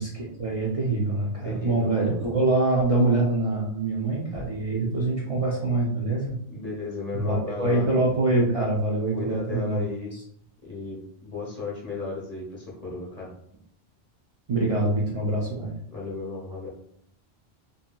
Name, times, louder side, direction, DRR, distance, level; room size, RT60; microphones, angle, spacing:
voice 1, 0.0-6.4 7.1-9.8 14.5-15.7, right 2 dB, 45° right, -5 dB, 0.5 m, -24 dB
voice 2, 1.4-2.1 6.5-7.9 9.1-10.2 10.6-13.3 15.9-16.7, left 3 dB, 40° left, -4 dB, 0.8 m, -35 dB
2.7 x 2.7 x 2.2 m, 0.68 s
omnidirectional pair, 1.0 m